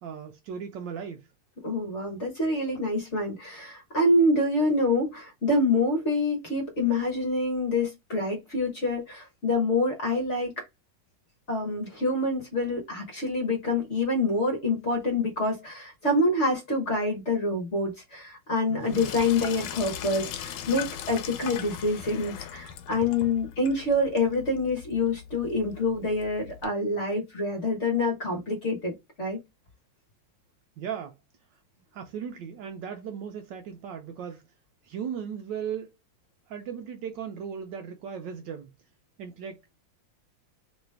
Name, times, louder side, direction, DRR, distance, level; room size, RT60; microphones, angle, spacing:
voice 1, 0.0-1.3 18.7-19.1 30.8-31.2 31.9-34.5 34.8-36.0 36.5-38.7 39.2-39.6, right 7 dB, 75° right, 1.1 m, -37 dB
voice 2, 1.6-10.6 11.5-29.4, left 2 dB, 45° left, 1.1 m, -26 dB
Sink (filling or washing), 18.8-26.7, left 9 dB, 85° left, 1.4 m, -39 dB
3.2 x 3.1 x 3.2 m
omnidirectional pair, 2.3 m